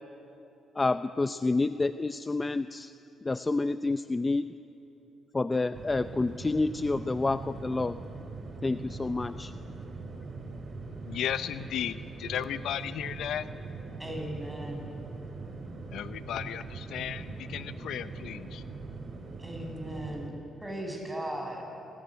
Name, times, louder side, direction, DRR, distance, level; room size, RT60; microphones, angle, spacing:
voice 1, 0.7-2.9 3.2-4.4 5.3-8.0 8.6-9.5, left 3 dB, 20° left, 11 dB, 0.6 m, -28 dB
sound 1, 5.7-20.3, right 3 dB, 45° right, 3.8 m, -41 dB
voice 2, 11.0-13.5 15.9-18.6, left 10 dB, 75° left, 12 dB, 0.8 m, -35 dB
voice 3, 14.0-14.8 19.4-20.4 20.6-21.6, right 1 dB, 10° right, 1 dB, 7.8 m, -37 dB
27.5 x 19.5 x 9.2 m, 3.0 s
cardioid pair, 90°, 0 cm